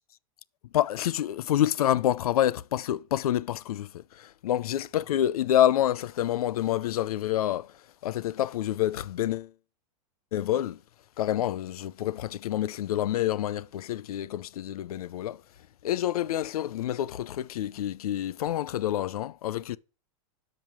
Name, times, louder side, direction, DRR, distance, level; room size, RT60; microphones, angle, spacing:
voice 1, 0.7-7.7 8.0-9.5 10.3-10.8 11.2-15.4 15.8-19.8, left 12 dB, 80° left, 0.7 m, -27 dB
12.5 x 5.4 x 6.2 m
supercardioid pair, 150°, 19 cm